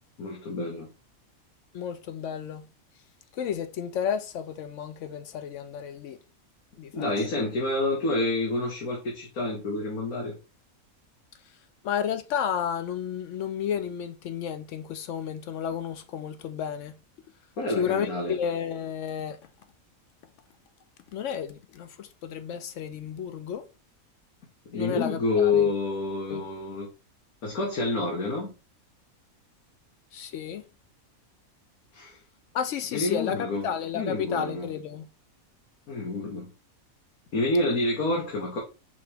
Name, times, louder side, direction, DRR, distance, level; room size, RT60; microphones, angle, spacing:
voice 1, 0.2-0.9 6.9-10.4 17.6-18.4 24.7-26.9 27.4-28.5 31.9-32.2 32.9-33.7 33.9-34.7 35.9-36.5 37.3-38.6, left 3 dB, 90° left, 1.6 m, -28 dB
voice 2, 1.7-2.7 3.3-6.2 6.8-7.4 11.8-16.9 17.8-19.4 21.1-23.7 24.7-25.7 26.3-26.4 30.1-30.6 32.5-35.1, left 8 dB, 65° left, 0.8 m, -32 dB
5.0 x 2.9 x 3.4 m
omnidirectional pair, 1.5 m